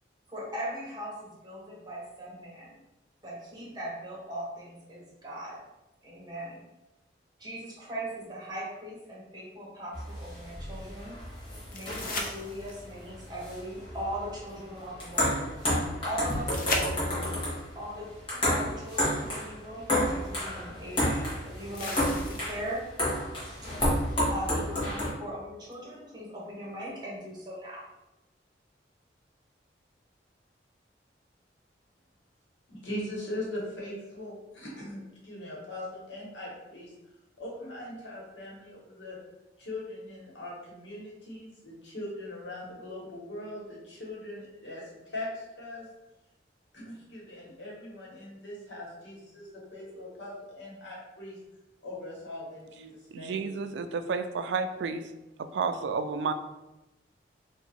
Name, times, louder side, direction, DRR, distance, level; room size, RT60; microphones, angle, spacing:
voice 1, 0.3-2.7 3.2-5.7 6.0-6.6 7.4-11.2 11.7-15.5 16.0-17.4 17.7-18.1 18.4-22.9 24.3-27.8, equal, 25° right, -5 dB, 1.0 m, -39 dB
sound 1, 9.9-25.1, left 1 dB, 30° left, 1.2 m, -31 dB
sound 2, 11.7-13.0 16.5-17.5 19.4-19.5 21.7-22.8 25.7-25.8, left 2 dB, 50° left, 0.5 m, -35 dB
voice 2, 32.7-36.9 37.4-39.2 39.6-45.9 46.7-51.4 51.8-53.5, left 1 dB, 90° left, -4 dB, 1.3 m, -40 dB
voice 3, 53.1-55.0 55.4-56.3, right 4 dB, 75° right, 9 dB, 0.3 m, -31 dB
2.9 x 2.5 x 4.0 m, 0.98 s
head